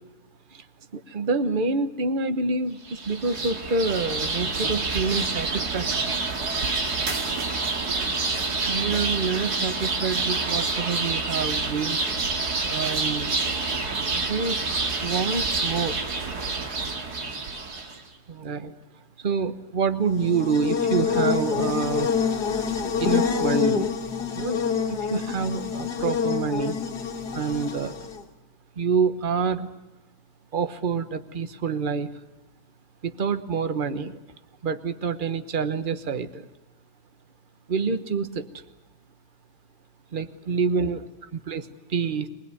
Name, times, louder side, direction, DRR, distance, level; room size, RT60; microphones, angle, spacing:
voice 1, 1.1-6.0 8.7-12.0 12.6-13.4 14.1-14.6 15.0-16.0 18.3-18.7 19.2-22.1 23.0-23.9 24.3-24.6 24.9-26.7 27.3-27.9 28.8-29.7 30.5-32.1 33.0-34.2 34.6-36.5 37.7-38.4 40.1-41.0 41.5-41.6 41.9-42.3, right 5 dB, 35° right, 11 dB, 1.1 m, -27 dB
sound 1, 2.8-18.0, right 3 dB, 60° right, 2.5 m, -27 dB
Buzz, 20.1-28.2, left 6 dB, 60° left, 2.2 m, -26 dB
23.5 x 20.0 x 9.8 m, 1.0 s
omnidirectional pair, 2.0 m